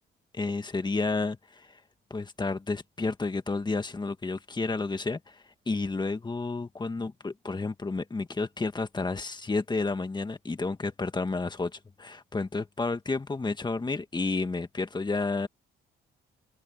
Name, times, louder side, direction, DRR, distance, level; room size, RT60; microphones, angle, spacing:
voice 1, 0.3-1.8 2.1-15.5, left 3 dB, 20° left, 1.8 m, -31 dB
cardioid pair, 90°, 20 cm